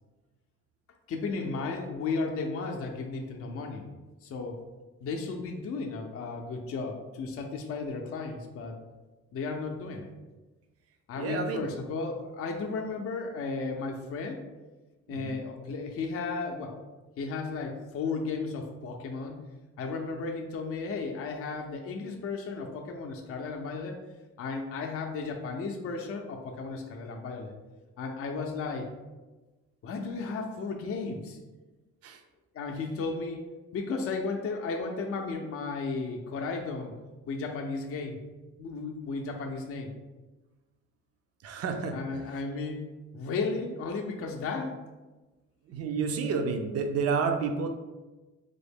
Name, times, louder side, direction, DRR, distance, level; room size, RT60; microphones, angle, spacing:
voice 1, 1.1-3.9 4.2-4.6 5.0-8.8 9.3-10.1 11.1-14.4 15.1-16.8 17.2-19.4 19.8-24.0 24.4-27.5 28.0-28.9 29.8-31.4 32.5-33.4 33.7-37.0 37.3-38.2 38.6-39.9 41.9-42.9 43.1-44.8, left 4 dB, 50° left, 2 dB, 0.5 m, -34 dB
voice 2, 11.2-11.7 15.1-15.4 32.0-32.2 41.4-42.2 45.7-47.7, right 5 dB, 55° right, 6 dB, 0.5 m, -30 dB
3.6 x 2.0 x 3.4 m, 1.2 s
cardioid pair, 90°, 30 cm